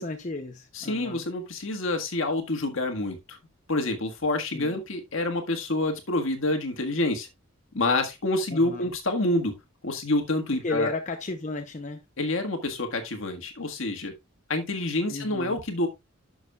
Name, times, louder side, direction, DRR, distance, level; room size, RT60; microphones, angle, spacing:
voice 1, 0.0-1.2 4.5-4.8 8.5-8.9 10.6-12.0 15.1-15.6, left 3 dB, 35° left, 0.7 m, -33 dB
voice 2, 0.7-3.4 3.7-7.3 7.7-9.5 9.8-10.9 12.2-14.1 14.5-15.9, left 2 dB, 65° left, 1.7 m, -27 dB
11.0 x 6.3 x 2.3 m
head